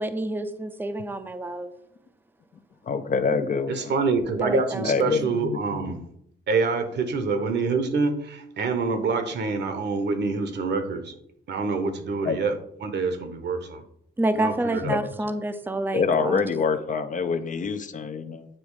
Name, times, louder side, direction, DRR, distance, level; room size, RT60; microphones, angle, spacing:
voice 1, 0.0-1.7 4.4-5.1 14.2-16.4, right 1 dB, 10° right, 0.6 m, -28 dB
voice 2, 2.8-3.9 4.8-5.9 12.2-12.4 14.8-15.0 15.9-18.5, left 5 dB, 40° left, 0.6 m, -26 dB
voice 3, 3.7-6.0 6.5-11.1 11.5-13.8 14.4-15.0, right 4 dB, 60° right, 1.1 m, -26 dB
8.7 x 3.1 x 4.8 m
cardioid pair, 90°, 20 cm